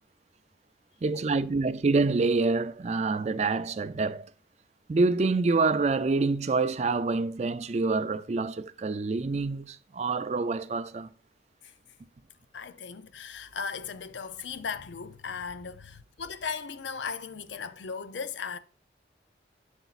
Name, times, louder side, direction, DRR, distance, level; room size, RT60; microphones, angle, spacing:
voice 1, 1.0-4.3 4.9-11.1, right 3 dB, 35° right, 0.4 m, -26 dB
voice 2, 12.5-18.6, left 5 dB, 85° left, 0.6 m, -37 dB
8.0 x 7.9 x 2.5 m
head